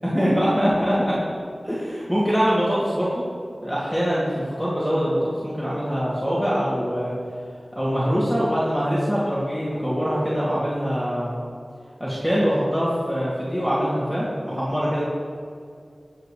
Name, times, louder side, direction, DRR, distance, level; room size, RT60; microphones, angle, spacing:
voice 1, 0.0-1.1 1.6-3.2 3.6-7.1 7.7-11.3 12.0-15.0, equal, 5° right, -9 dB, 2.9 m, -23 dB
20.5 x 8.1 x 3.4 m, 2.3 s
wide cardioid pair, 70°, 0 cm